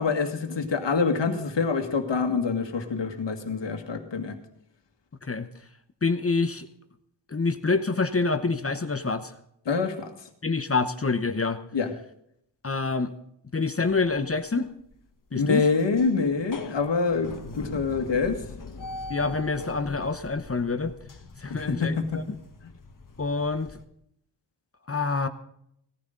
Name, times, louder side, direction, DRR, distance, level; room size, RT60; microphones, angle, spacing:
voice 1, 0.0-4.4 9.7-10.1 11.7-11.9 15.4-18.4 21.5-22.2, left 4 dB, 85° left, 6 dB, 1.9 m, -26 dB
voice 2, 6.0-6.7 7.3-9.3 10.4-11.6 12.6-13.1 13.5-14.7 15.3-15.6 19.1-20.9 21.4-22.4 23.2-23.7 24.9-25.3, left 4 dB, 35° left, 9 dB, 0.9 m, -26 dB
sound 1, 13.9-14.4 14.8-15.0 15.4-23.8, left 3 dB, 50° left, 1.4 m, -42 dB
17.5 x 14.5 x 3.8 m, 0.74 s
wide cardioid pair, 115°, 42 cm